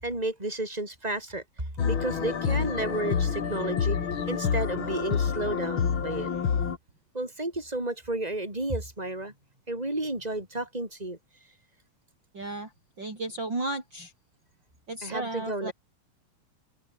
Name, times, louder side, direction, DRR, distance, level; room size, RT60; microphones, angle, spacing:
voice 1, 0.0-1.4 1.8-4.0 4.3-6.3 7.1-9.3 9.7-11.2 15.0-15.7, right 2 dB, 10° right, 7.3 m, -32 dB
sound 1, 1.8-6.8, left 6 dB, 40° left, 2.5 m, -28 dB
voice 2, 12.3-12.7 13.0-14.1 14.9-15.7, right 2 dB, 30° right, 5.6 m, -34 dB
open air
omnidirectional pair, 4.2 m